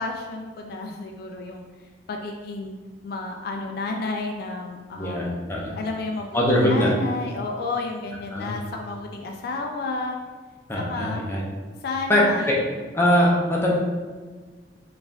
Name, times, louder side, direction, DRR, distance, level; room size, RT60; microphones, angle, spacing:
voice 1, 0.0-1.6 2.1-2.8 3.0-5.4 5.7-10.2 10.9-11.2 11.8-12.7, left 3 dB, 55° left, 2 dB, 0.3 m, -31 dB
voice 2, 4.9-5.7 6.3-6.9 8.3-8.6 10.7-11.4 12.1-12.5 12.9-13.7, equal, 15° left, -4 dB, 0.6 m, -21 dB
4.2 x 2.4 x 3.4 m, 1.4 s
head